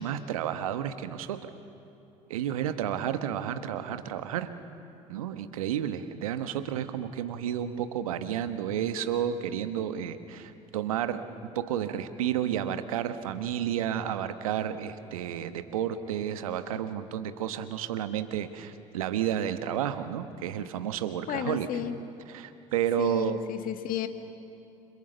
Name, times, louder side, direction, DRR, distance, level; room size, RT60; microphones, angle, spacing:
voice 1, 0.0-1.5 2.3-4.5 5.1-21.7 22.3-23.4, right 10 dB, 80° right, 10 dB, 1.3 m, -31 dB
voice 2, 21.3-22.0 23.0-24.1, left 10 dB, 55° left, 8 dB, 1.8 m, -32 dB
29.0 x 27.0 x 6.9 m, 2.8 s
hypercardioid pair, 65°, 18 cm